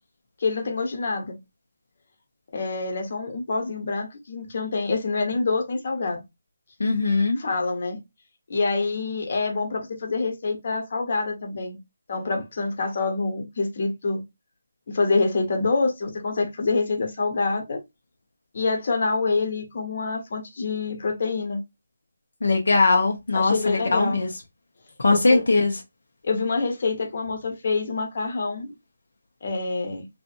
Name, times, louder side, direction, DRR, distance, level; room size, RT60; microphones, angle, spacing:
voice 1, 0.4-1.4 2.5-6.2 7.4-8.0 8.5-11.8 12.1-14.2 14.9-17.8 18.5-21.6 23.3-24.2 25.1-25.4 26.2-28.7 29.4-30.1, left 3 dB, 50° left, 1.0 m, -26 dB
voice 2, 6.8-7.4 22.4-24.3 25.0-25.8, left 3 dB, 75° left, 0.7 m, -20 dB
2.7 x 2.5 x 2.4 m
figure-of-eight pair, 160°, 0 cm